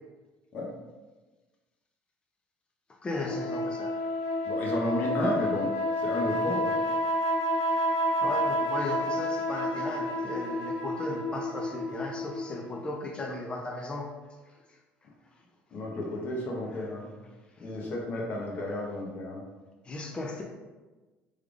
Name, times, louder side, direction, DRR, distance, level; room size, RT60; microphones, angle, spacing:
voice 1, 3.0-3.9 8.2-14.0 16.7-16.9 19.8-20.4, left 2 dB, 25° left, 0 dB, 0.5 m, -36 dB
sound 1, 3.2-12.9, equal, 90° left, 0.4 m, -30 dB
voice 2, 4.4-5.7 6.0-6.7 15.7-17.1 17.6-19.4, left 1 dB, 50° left, -1 dB, 0.9 m, -32 dB
3.5 x 3.3 x 2.4 m, 1.2 s
supercardioid pair, 100°, 4 cm